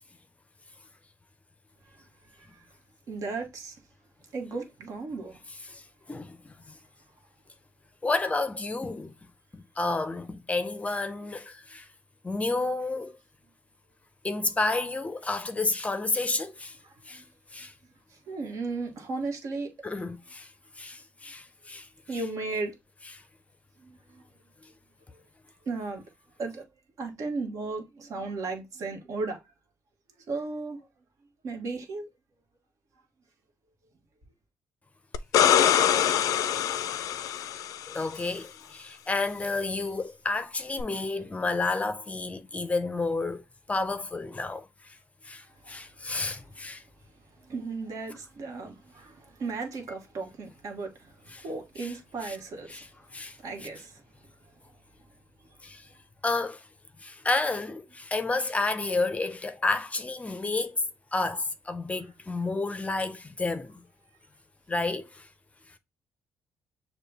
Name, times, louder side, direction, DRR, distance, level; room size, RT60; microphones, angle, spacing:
voice 1, 3.1-3.8 4.3-5.4 16.8-17.2 18.3-19.7 22.1-22.7 23.8-24.3 25.1-25.2 25.6-26.0 26.4-26.6 27.0-29.4 30.3-30.9 31.4-32.1 45.6-46.2 47.4-52.8 53.4-54.0, right 3 dB, 65° right, 1.3 m, -35 dB
voice 2, 6.1-6.8 8.0-9.1 9.5-11.9 12.2-13.1 14.2-16.8 17.1-17.2 17.5-17.7 19.8-21.9 37.9-43.4 43.7-45.0 45.2-46.8 51.3-51.4 51.8-51.9 52.2-52.4 52.7-52.9 53.1-53.4 55.6-55.9 56.2-56.6 57.0-60.8 61.1-63.8 64.7-65.3, left 3 dB, 20° left, 0.5 m, -30 dB
sound 1, 35.1-38.0 40.8-40.9, left 10 dB, 75° left, 0.4 m, -24 dB
6.5 x 2.2 x 3.3 m
cardioid pair, 85°, 6 cm